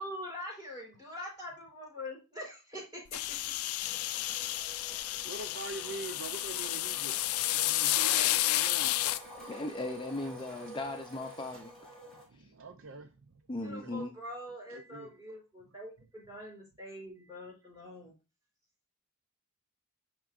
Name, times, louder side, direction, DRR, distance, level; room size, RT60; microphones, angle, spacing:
voice 1, 0.0-3.7 13.6-18.1, left 1 dB, 20° right, 4.2 m, -44 dB
sound 1, 3.1-9.2, left 16 dB, 75° left, 0.4 m, -31 dB
Tools, 3.7-11.6, right 1 dB, 35° right, 3.2 m, -59 dB
sound 2, 3.8-12.2, equal, ahead, 2.6 m, -49 dB
voice 2, 4.7-7.2 7.5-9.0 12.1-14.0 14.7-15.4 17.3-17.4, right 3 dB, 60° right, 0.6 m, -45 dB
voice 3, 9.4-11.7 12.3-12.5 13.5-14.1, left 2 dB, 20° left, 0.5 m, -38 dB
10.5 x 3.7 x 2.5 m
head